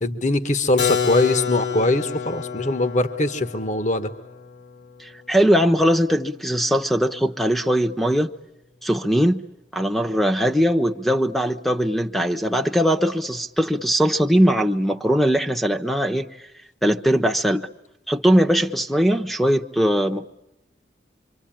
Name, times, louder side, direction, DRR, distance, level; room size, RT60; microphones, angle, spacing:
voice 1, 0.0-4.1, left 2 dB, 45° left, 1.4 m, -22 dB
Keyboard (musical), 0.8-6.4, left 6 dB, 75° left, 1.7 m, -29 dB
voice 2, 5.0-8.3 8.8-9.5 9.7-16.3 16.8-17.7 18.1-20.3, equal, ahead, 1.0 m, -20 dB
26.0 x 25.5 x 8.9 m
head